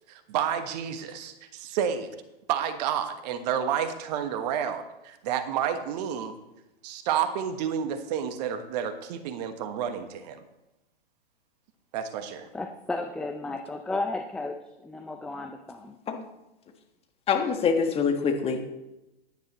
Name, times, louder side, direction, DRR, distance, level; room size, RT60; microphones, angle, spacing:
voice 1, 0.1-2.1 2.5-4.8 5.2-6.4 6.8-10.4 11.9-12.5, right 8 dB, 45° right, 9 dB, 1.3 m, -30 dB
voice 2, 12.5-16.0, left 2 dB, 5° left, 5 dB, 0.5 m, -34 dB
voice 3, 17.3-18.6, left 6 dB, 20° left, 4 dB, 1.6 m, -25 dB
16.0 x 10.5 x 3.1 m, 0.95 s
hypercardioid pair, 115°, 30 cm